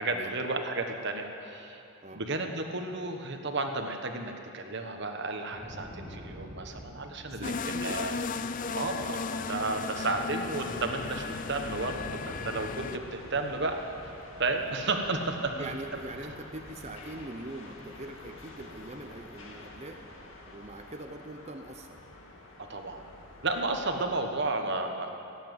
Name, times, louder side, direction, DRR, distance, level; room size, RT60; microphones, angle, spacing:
voice 1, 0.0-1.8 2.1-8.2 8.7-13.8 14.4-15.7 22.6-23.0 23.4-25.1, right 3 dB, 50° right, 5 dB, 1.3 m, -32 dB
Thunder, 5.2-14.3, equal, 20° left, 3.4 m, -49 dB
voice 2, 7.3-8.1 10.2-10.4 15.6-20.0 20.5-22.0 23.9-24.1, right 2 dB, 30° right, 5 dB, 0.7 m, -43 dB
sound 1, 7.4-13.0, left 5 dB, 35° left, 0.4 m, -35 dB
sound 2, 10.9-24.0, left 1 dB, 60° left, 2.0 m, -48 dB
17.0 x 8.7 x 9.5 m, 2.8 s
head